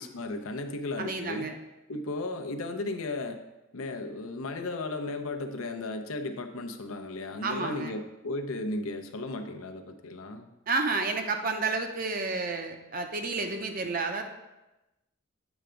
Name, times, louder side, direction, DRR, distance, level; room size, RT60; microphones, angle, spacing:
voice 1, 0.0-1.5 1.9-3.4 3.7-10.5, left 2 dB, 90° left, 6 dB, 0.6 m, -35 dB
voice 2, 1.0-1.5 7.4-8.0 10.7-14.2, right 3 dB, 45° right, 5 dB, 0.6 m, -30 dB
8.0 x 3.4 x 5.0 m, 1.0 s
head